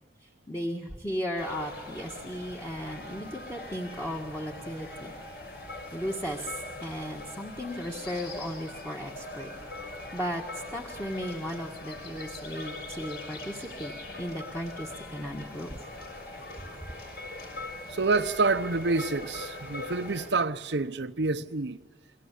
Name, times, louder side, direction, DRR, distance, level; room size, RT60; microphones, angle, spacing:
voice 1, 0.5-5.1 5.9-9.5 9.8-13.9 14.2-15.8, equal, 10° left, 1.7 m, -36 dB
sound 1, 1.4-20.3, left 2 dB, 65° left, 6.4 m, -41 dB
voice 2, 17.9-21.8, right 3 dB, 90° right, 0.9 m, -28 dB
29.5 x 23.0 x 8.5 m
head